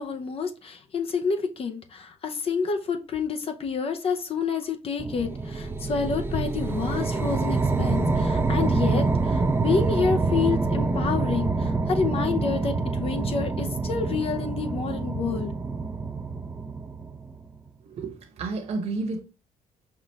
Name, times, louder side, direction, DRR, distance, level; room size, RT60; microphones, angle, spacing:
voice 1, 0.0-15.5, left 5 dB, 45° left, 0.6 m, -28 dB
sound 1, 5.0-17.5, right 3 dB, 15° right, 0.5 m, -26 dB
voice 2, 17.8-19.2, right 3 dB, 45° right, 1.1 m, -31 dB
5.6 x 2.4 x 3.2 m
cardioid pair, 110°, 14 cm